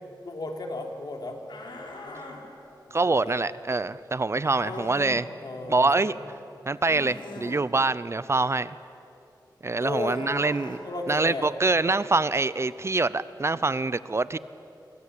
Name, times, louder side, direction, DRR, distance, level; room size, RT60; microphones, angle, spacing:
voice 1, 0.2-1.4 2.0-2.2 3.0-3.4 4.6-6.1 9.8-10.2 10.8-11.5, left 2 dB, 60° left, 3 dB, 3.4 m, -35 dB
sound 1, 1.5-2.4 4.4-5.2 6.8-7.6 10.0-10.8, left 3 dB, 85° left, 4.0 m, -41 dB
voice 2, 2.9-5.3 5.7-6.1 6.7-8.8 9.6-10.8 11.1-14.4, right 3 dB, 35° right, 16 dB, 0.6 m, -25 dB
27.5 x 24.0 x 8.5 m, 2.8 s
wide cardioid pair, 90°, 8 cm